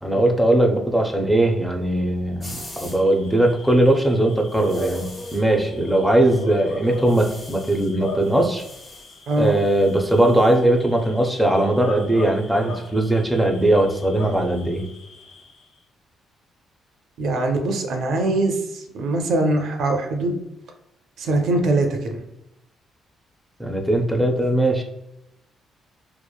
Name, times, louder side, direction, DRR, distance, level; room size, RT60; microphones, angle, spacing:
voice 1, 0.0-8.6 9.4-14.8 23.6-24.8, right 1 dB, ahead, 2 dB, 0.4 m, -19 dB
sound 1, 2.4-3.0 4.5-5.4 6.9-7.9 8.2-10.5, left 1 dB, 20° left, 1.1 m, -43 dB
Bark / Cricket, 2.5-15.8, left 1 dB, 85° left, 0.7 m, -38 dB
voice 2, 17.2-20.4 21.2-22.2, right 2 dB, 70° right, 5 dB, 0.4 m, -22 dB
2.9 x 2.1 x 2.2 m, 0.84 s
cardioid pair, 90°, 0 cm